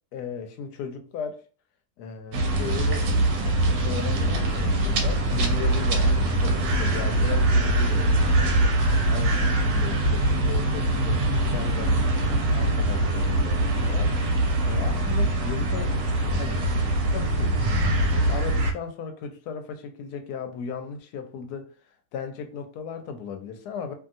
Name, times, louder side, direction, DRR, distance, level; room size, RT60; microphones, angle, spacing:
voice 1, 0.1-1.4 2.0-3.1 3.8-8.7 9.1-12.0 12.5-14.1 14.6-16.0 16.4-16.6 17.1-17.6 18.1-21.7 22.1-23.9, left 6 dB, 70° left, 1.0 m, -36 dB
sound 1, 2.3-18.7, right 1 dB, 90° right, 1.3 m, -23 dB
2.7 x 2.7 x 2.5 m
omnidirectional pair, 1.9 m